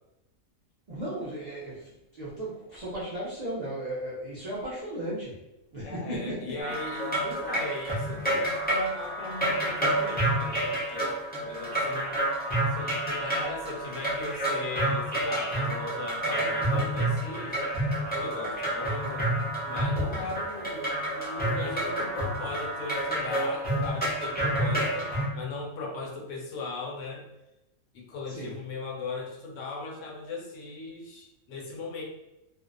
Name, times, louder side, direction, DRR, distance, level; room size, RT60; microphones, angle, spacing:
voice 1, 0.9-5.4 5.7-6.5 28.3-28.6, right 1 dB, 55° right, -8 dB, 0.4 m, -35 dB
voice 2, 5.8-11.2 11.4-12.2 12.7-17.6 18.2-19.3 19.6-27.2 27.9-32.0, left 3 dB, 70° left, -1 dB, 0.9 m, -38 dB
sound 1, 6.6-25.3, right 1 dB, 15° left, 0.4 m, -29 dB
2.5 x 2.0 x 2.5 m, 0.91 s
omnidirectional pair, 1.4 m